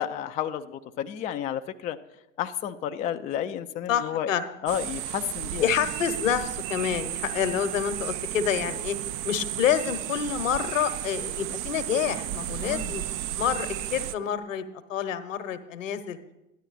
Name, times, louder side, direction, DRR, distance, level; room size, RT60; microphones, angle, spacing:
voice 1, 0.0-2.0 2.4-4.3 4.6-5.7 12.6-12.9, left 10 dB, 20° left, 8 dB, 0.4 m, -31 dB
voice 2, 3.9-4.4 4.7-4.8 5.6-9.0 9.2-13.0 13.4-16.2, left 8 dB, 70° left, 11 dB, 1.1 m, -28 dB
sound 1, 4.7-14.2, right 13 dB, 40° right, 0.5 m, -33 dB
13.0 x 10.5 x 4.1 m, 0.93 s
figure-of-eight pair, 80°, 39 cm